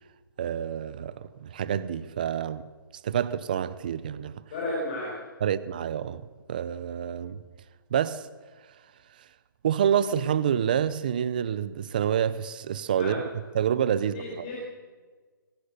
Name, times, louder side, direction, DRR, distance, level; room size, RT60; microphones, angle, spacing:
voice 1, 0.4-2.6 3.0-4.4 5.4-6.2 6.5-7.4 7.9-8.3 9.6-13.2 13.5-14.2, right 9 dB, 25° right, 0.5 m, -27 dB
voice 2, 4.5-5.1 13.0-13.2 14.1-14.6, left 2 dB, 25° left, 6.1 m, -33 dB
25.5 x 16.5 x 6.8 m
hypercardioid pair, 175°, 12 cm